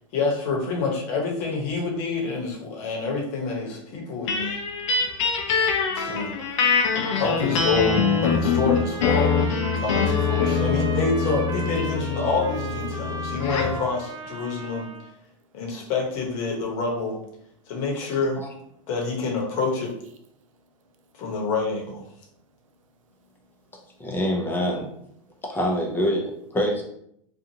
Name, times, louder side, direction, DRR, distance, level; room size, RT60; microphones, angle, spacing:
voice 1, 0.1-4.6 5.9-6.3 7.2-9.3 9.8-14.9 15.5-17.1 17.7-18.4 18.9-19.9 21.2-22.0, left 4 dB, 50° left, -1 dB, 1.0 m, -27 dB
sound 1, 4.3-13.8, left 5 dB, 70° left, 0.6 m, -24 dB
voice 2, 5.0-5.9 6.2-6.3 6.6-7.2 9.7-9.8 18.8-18.9 20.4-21.0 23.1-23.7, equal, 80° right, 6 dB, 0.5 m, -63 dB
Trumpet, 7.2-15.1, right 3 dB, 25° right, 0.6 m, -36 dB
voice 3, 24.0-24.9 25.4-26.8, equal, 10° left, 0 dB, 0.7 m, -25 dB
2.7 x 2.4 x 2.8 m, 0.72 s
hypercardioid pair, 115°, 17 cm